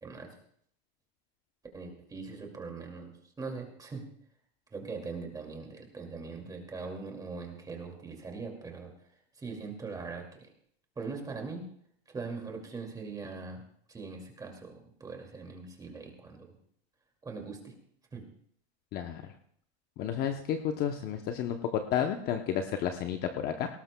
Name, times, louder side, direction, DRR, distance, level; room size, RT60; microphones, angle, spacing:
voice 1, 0.0-0.3 1.7-4.1 4.7-8.9 9.4-10.5 11.0-11.6 12.1-13.6 13.9-16.6 17.2-17.7 18.1-18.2, right 4 dB, 10° right, 2 dB, 2.3 m, -41 dB
voice 2, 18.9-19.3 20.0-23.7, left 9 dB, 30° left, 6 dB, 0.7 m, -31 dB
18.5 x 18.0 x 2.2 m, 0.65 s
supercardioid pair, 155°, 32 cm